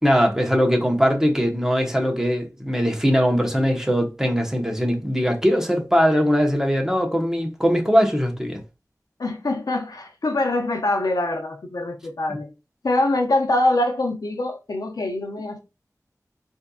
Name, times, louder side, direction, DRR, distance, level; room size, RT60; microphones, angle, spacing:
voice 1, 0.0-8.6, equal, 10° right, 1.0 m, -20 dB
voice 2, 9.2-12.5 12.8-15.6, left 2 dB, 90° left, 0.7 m, -24 dB
4.3 x 2.7 x 2.3 m
wide cardioid pair, 65°, 6 cm